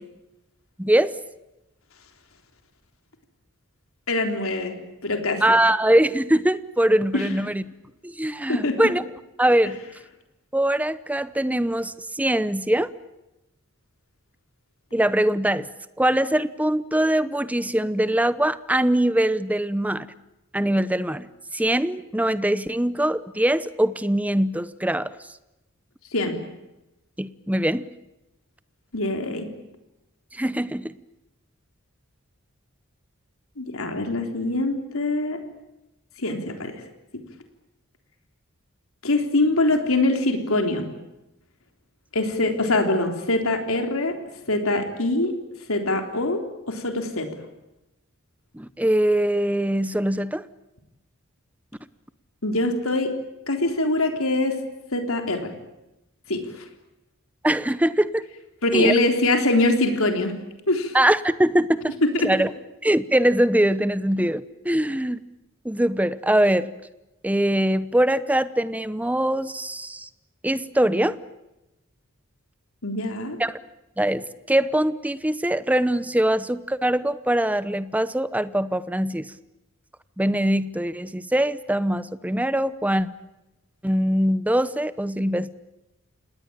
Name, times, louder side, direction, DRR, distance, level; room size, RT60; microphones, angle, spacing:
voice 1, 0.8-1.1 5.4-7.6 8.0-9.0 9.4-9.8 10.5-12.9 14.9-15.7 16.0-20.1 20.5-25.1 27.2-27.9 30.3-30.9 48.5-50.4 57.4-58.2 58.7-58.9 60.9-62.0 62.2-62.5 62.8-65.2 65.6-66.7 67.2-70.1 70.4-71.2 73.4-73.6 74.0-79.3 80.2-83.1 83.8-85.5, right 1 dB, 5° right, 15 dB, 0.8 m, -22 dB
voice 2, 4.1-4.7 5.0-5.4 7.1-7.3 8.5-8.9 26.1-26.4 28.9-29.5 33.6-35.4 36.2-36.7 39.0-40.9 42.1-44.1 44.5-45.3 45.7-46.4 46.7-47.3 52.4-53.1 53.5-54.6 54.9-55.5 56.3-56.6 58.6-60.3 60.7-61.0 62.0-62.1 72.8-73.4, left 2 dB, 80° left, 5 dB, 3.8 m, -23 dB
27.5 x 19.5 x 8.9 m, 0.95 s
head